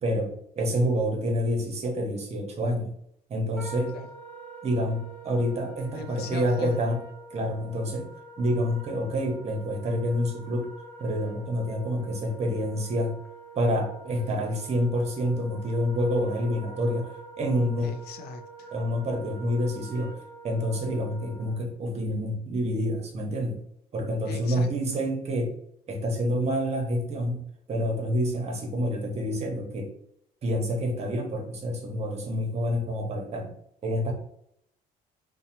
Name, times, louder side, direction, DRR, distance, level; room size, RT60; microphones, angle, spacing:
voice 1, 0.0-2.9 3.3-3.9 4.6-7.0 7.3-8.1 8.4-10.7 11.0-13.2 13.5-17.1 17.4-17.9 18.7-20.1 20.4-23.6 23.9-25.5 25.9-29.9 30.4-33.5 33.8-34.1, equal, 40° right, 2 dB, 0.7 m, -28 dB
Wind instrument woodwind instrument, 3.5-21.7, right 2 dB, 10° left, 0.7 m, -46 dB
voice 2, 5.9-6.8 17.8-18.7 24.2-25.0, left 6 dB, 70° left, 8 dB, 0.4 m, -39 dB
2.6 x 2.0 x 2.8 m, 0.72 s
cardioid pair, 110°, 17 cm